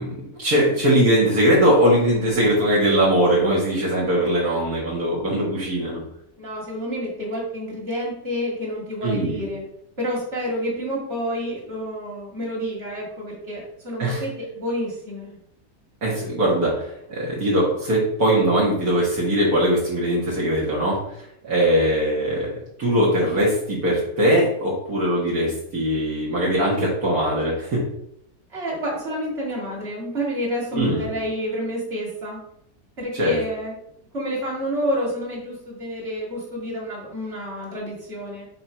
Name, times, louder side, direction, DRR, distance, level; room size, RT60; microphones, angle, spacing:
voice 1, 0.0-6.0 9.0-9.4 14.0-14.2 16.0-22.5 22.8-27.8 30.7-31.1 33.1-33.4, equal, 65° right, -6 dB, 2.1 m, -21 dB
voice 2, 6.4-9.6 10.0-15.4 28.5-32.4 33.0-33.8 34.1-38.5, equal, 40° right, -4 dB, 2.5 m, -29 dB
5.4 x 4.3 x 4.5 m, 0.73 s
omnidirectional pair, 1.7 m